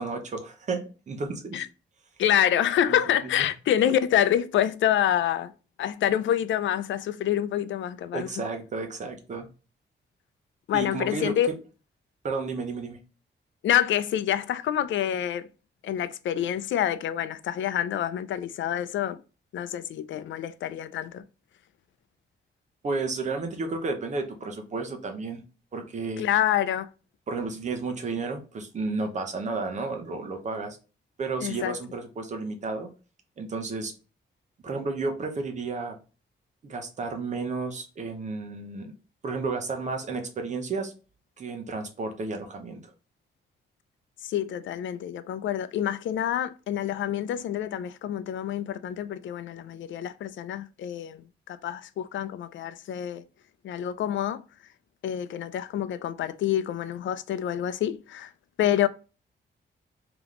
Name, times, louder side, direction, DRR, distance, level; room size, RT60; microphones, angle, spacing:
voice 1, 0.0-1.6 3.4-3.5 8.1-9.5 10.7-11.3 12.2-13.0 22.8-25.4 25.7-26.2 27.3-30.8 31.2-32.9 33.4-33.9 34.6-36.0 36.6-38.9 39.2-40.9 41.4-42.9, right 3 dB, 40° right, 0.8 m, -32 dB
voice 2, 2.2-5.5 5.8-8.3 10.7-11.5 13.6-15.5 15.8-19.2 19.5-21.2 26.2-26.9 31.4-31.8 44.2-53.2 53.6-54.4 55.0-58.3 58.6-58.9, left 10 dB, 85° left, 0.4 m, -27 dB
3.5 x 2.9 x 3.7 m
wide cardioid pair, 175°, 19 cm